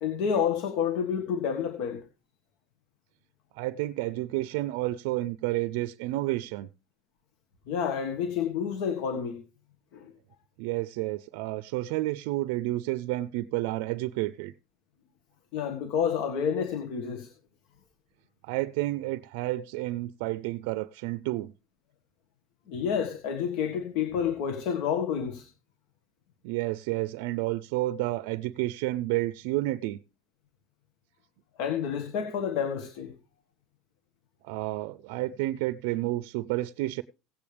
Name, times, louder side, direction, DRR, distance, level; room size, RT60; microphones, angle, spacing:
voice 1, 0.0-2.0 7.7-9.4 9.9-10.1 15.5-17.3 22.7-25.5 31.6-33.1, left 7 dB, 65° left, 1.5 m, -29 dB
voice 2, 3.6-6.7 10.6-14.5 18.4-21.5 26.4-30.0 34.4-37.0, right 17 dB, 80° right, 0.4 m, -30 dB
17.0 x 8.6 x 3.4 m
cardioid pair, 140°, 0 cm